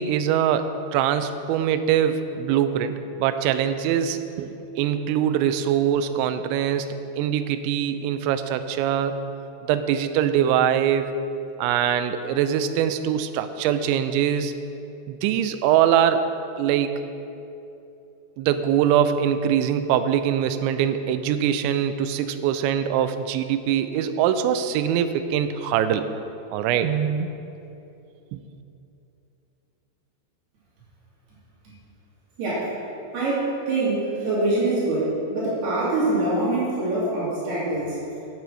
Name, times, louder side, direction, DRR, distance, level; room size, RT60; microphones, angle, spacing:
voice 1, 0.0-9.2 9.7-11.1 11.6-14.6 15.1-16.3 16.6-17.0 18.4-26.0 26.5-27.3 28.3-28.4, right 9 dB, 80° right, 9 dB, 2.8 m, -23 dB
voice 2, 32.4-32.7 33.1-38.0, right 2 dB, 60° right, -9 dB, 4.6 m, -24 dB
9.4 x 8.6 x 6.2 m, 2.9 s
omnidirectional pair, 5.5 m